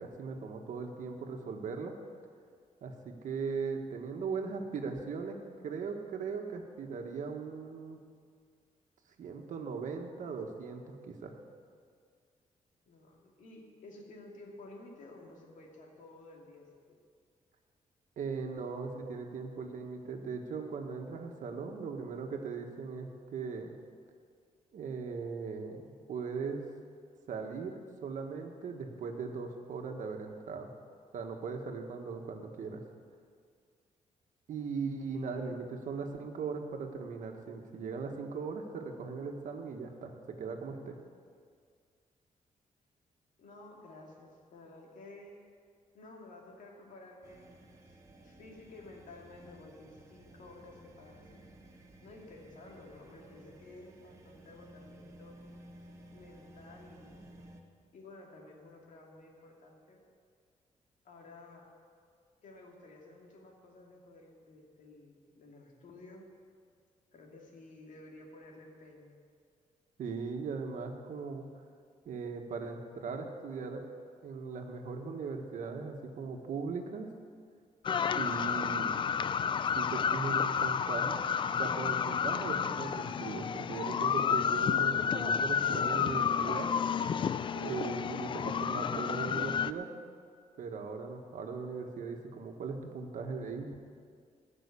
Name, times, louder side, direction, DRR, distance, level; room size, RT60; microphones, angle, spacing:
voice 1, 0.0-1.9 2.8-5.4 5.6-8.0 9.2-11.3 18.2-23.7 24.7-26.6 27.3-30.7 31.1-32.8 34.5-40.1 40.4-41.0 70.0-71.4 72.0-73.8 74.2-77.1 78.2-79.1 79.7-81.2 81.6-86.7 87.5-89.9 90.6-93.8, right 5 dB, 70° right, 4 dB, 1.5 m, -39 dB
voice 2, 12.9-17.0 35.1-35.6 43.4-45.4 45.9-48.0 48.2-51.5 52.0-55.4 56.1-57.3 57.9-60.0 61.0-61.7 62.4-66.3 67.1-69.2, left 2 dB, 75° left, 0 dB, 2.5 m, -53 dB
sound 1, 47.2-57.6, right 1 dB, 20° right, 1.3 m, -55 dB
sound 2, 77.8-89.7, left 7 dB, 40° left, 0.4 m, -31 dB
17.0 x 6.2 x 8.4 m, 2.1 s
cardioid pair, 135°, 13 cm